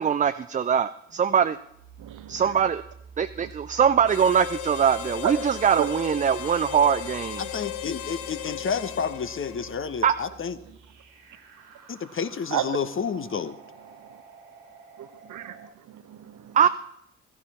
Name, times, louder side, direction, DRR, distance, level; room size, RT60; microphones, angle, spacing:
voice 1, 0.0-1.6 2.3-2.8 3.2-7.5 10.0-10.1 16.5-16.7, right 7 dB, 20° right, 12 dB, 0.4 m, -22 dB
sound 1, 1.1-15.7, right 5 dB, 75° right, 2.9 m, -48 dB
voice 2, 2.0-2.4 3.4-3.5 5.2-5.3 5.8-5.9 8.4-8.5 12.5-12.7 15.0-16.6, right 11 dB, 55° right, 11 dB, 1.1 m, -32 dB
sound 2, 2.4-3.1 4.1-4.5 5.1-5.6 6.4-6.9, left 3 dB, 80° left, 2.2 m, -52 dB
Harmonica, 4.0-10.0, left 12 dB, 60° left, 0.9 m, -37 dB
voice 3, 7.4-10.5 11.9-13.6, left 6 dB, 35° left, 12 dB, 1.0 m, -30 dB
15.5 x 14.0 x 4.2 m, 0.76 s
figure-of-eight pair, 40°, 38 cm